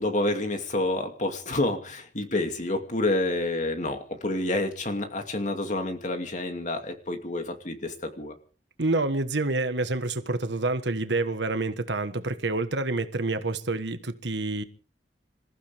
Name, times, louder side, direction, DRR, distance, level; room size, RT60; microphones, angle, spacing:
voice 1, 0.0-8.3, left 2 dB, 45° left, 2.6 m, -28 dB
voice 2, 8.8-14.6, right 2 dB, 80° right, 1.4 m, -28 dB
27.0 x 15.0 x 3.6 m
head